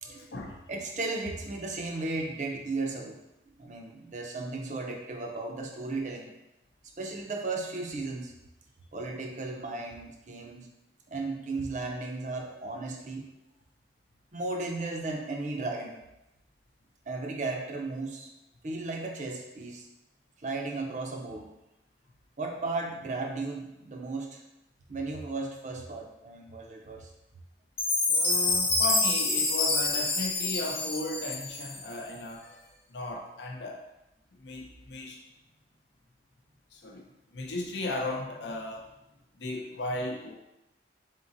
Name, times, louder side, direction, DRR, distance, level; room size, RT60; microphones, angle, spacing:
voice 1, 0.0-0.6 28.1-32.6 32.9-33.8 34.4-35.2 36.7-37.0 37.3-38.9 39.4-40.3, left 2 dB, 75° left, 0 dB, 0.6 m, -36 dB
voice 2, 0.7-3.2 3.6-6.3 7.0-8.3 8.9-10.7 11.1-13.3 14.3-16.0 17.1-18.3 18.6-19.9 20.4-21.5 22.4-24.4 24.9-27.1, right 3 dB, 40° right, 2 dB, 0.5 m, -35 dB
Chime, 27.8-32.0, left 3 dB, 30° left, 0.6 m, -27 dB
4.0 x 3.7 x 2.6 m, 0.92 s
head